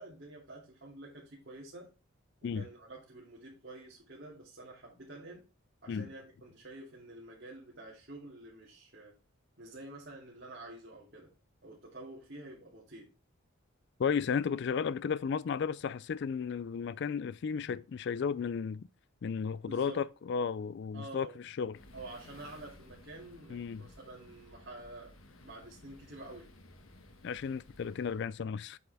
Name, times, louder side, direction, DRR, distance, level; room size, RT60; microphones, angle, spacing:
voice 1, 0.0-1.9 2.5-5.4 5.8-9.2 9.6-11.3 11.6-13.1 19.6-20.0 20.9-21.4 21.9-26.5, right 2 dB, 50° right, 2.5 m, -49 dB
voice 2, 14.0-18.9 19.2-21.8 23.5-23.9 27.2-28.8, left 6 dB, 55° left, 0.3 m, -34 dB
sound 1, 21.7-28.3, left 2 dB, 75° left, 1.4 m, -56 dB
8.1 x 6.9 x 3.4 m
head